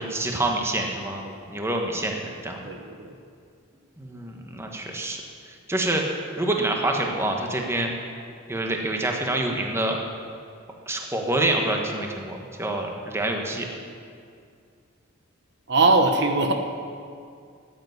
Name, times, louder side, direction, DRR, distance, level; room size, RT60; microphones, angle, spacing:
voice 1, 0.0-1.2 1.5-2.6 4.0-5.2 5.7-6.0 6.4-7.9 8.5-10.0 10.9-13.7, right 1 dB, 10° right, 1 dB, 1.3 m, -26 dB
voice 2, 1.3-1.6 2.6-3.1 15.7-16.5, right 3 dB, 55° right, 4 dB, 1.0 m, -22 dB
14.0 x 8.1 x 9.5 m, 2.3 s
head